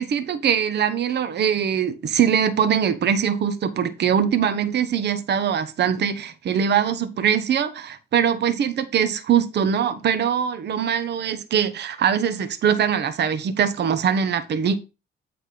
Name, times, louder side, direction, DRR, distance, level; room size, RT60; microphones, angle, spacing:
voice 1, 0.0-14.8, right 8 dB, 60° right, 1.0 m, -22 dB
8.6 x 3.3 x 5.9 m
cardioid pair, 90°, 20 cm